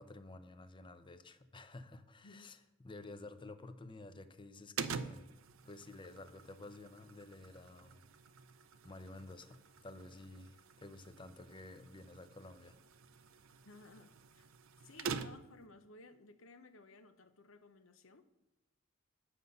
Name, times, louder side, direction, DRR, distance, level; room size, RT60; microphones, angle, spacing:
voice 1, 0.0-5.3 5.6-8.0 8.8-12.8, left 2 dB, 25° left, 0.6 m, -52 dB
sound 1, 4.8-15.7, right 5 dB, 80° right, 0.5 m, -47 dB
voice 2, 13.6-14.5 14.8-18.4, left 2 dB, 75° left, 0.8 m, -58 dB
9.8 x 6.7 x 5.5 m
head